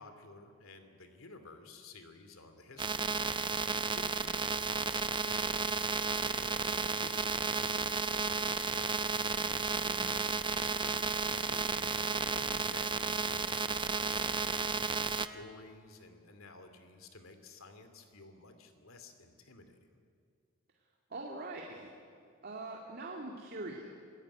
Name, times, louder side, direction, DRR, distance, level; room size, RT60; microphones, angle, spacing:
voice 1, 0.0-9.7 10.1-19.9, left 3 dB, 75° left, 8 dB, 2.7 m, -54 dB
sound 1, 2.8-15.3, right 4 dB, 25° right, 0.7 m, -33 dB
voice 2, 9.9-10.2 21.1-22.2 22.4-23.9, right 2 dB, 50° right, 0 dB, 2.3 m, -43 dB
27.0 x 16.5 x 9.7 m, 2.3 s
head